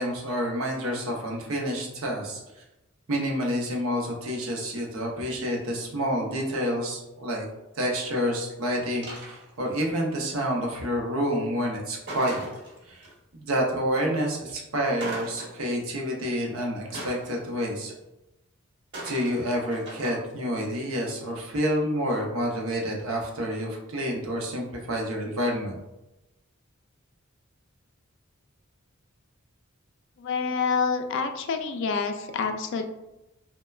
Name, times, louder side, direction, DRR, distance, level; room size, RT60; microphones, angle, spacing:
voice 1, 0.0-2.4 3.1-7.5 7.8-12.4 12.9-17.9 19.0-25.7, equal, 85° right, 0 dB, 0.7 m, -28 dB
sound 1, 9.0-9.7 12.1-13.1 15.0-15.8 16.9-18.0 18.9-20.2, right 1 dB, 55° right, 1.2 m, -39 dB
voice 2, 30.2-32.8, left 5 dB, 60° left, 7 dB, 0.3 m, -27 dB
3.1 x 2.1 x 2.3 m, 0.94 s
head